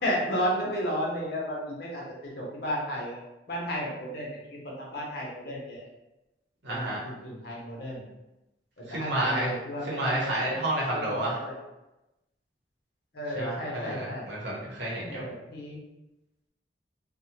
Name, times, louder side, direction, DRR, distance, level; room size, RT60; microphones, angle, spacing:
voice 1, 0.0-3.2 3.5-5.8 6.7-8.1 8.8-10.6 10.9-11.5 13.1-14.3 15.0-15.8, equal, 60° left, -3 dB, 0.8 m, -33 dB
voice 2, 6.6-7.0 8.8-9.5 9.8-11.4 13.4-15.3, right 1 dB, 80° right, -6 dB, 0.8 m, -30 dB
2.7 x 2.1 x 2.8 m, 0.97 s
head